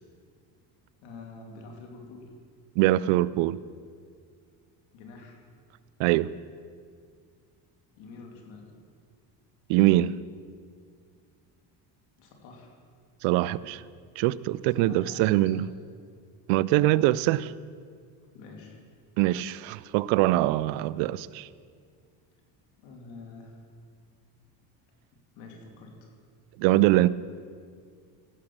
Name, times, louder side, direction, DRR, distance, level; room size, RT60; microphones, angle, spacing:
voice 1, 1.0-2.3 4.9-5.4 8.0-8.7 12.2-12.7 14.8-15.6 18.3-18.8 22.8-23.6 25.1-26.1, left 3 dB, 75° left, 2.8 m, -46 dB
voice 2, 2.8-3.6 6.0-6.3 9.7-10.1 13.2-13.8 14.2-15.7 16.5-17.5 19.2-21.5 26.6-27.1, right 16 dB, 80° right, 0.5 m, -23 dB
15.5 x 6.3 x 7.3 m
cardioid pair, 105°, 45 cm